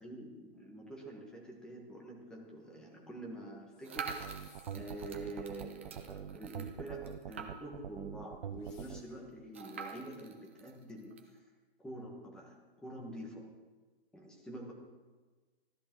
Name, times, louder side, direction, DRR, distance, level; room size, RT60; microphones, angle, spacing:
voice 1, 0.0-4.4 4.7-11.5 11.8-13.5 14.1-14.7, right 1 dB, ahead, -1 dB, 1.4 m, -46 dB
sound 1, 3.7-5.0 8.5-9.4, left 6 dB, 20° left, 0.9 m, -65 dB
sound 2, 3.8-7.9 8.3-8.4 8.6-8.7 9.5-11.3, right 5 dB, 15° right, 0.4 m, -46 dB
sound 3, 4.0-9.0, right 9 dB, 60° right, 0.7 m, -44 dB
14.5 x 13.0 x 4.6 m, 1.3 s
hypercardioid pair, 170°, 30 cm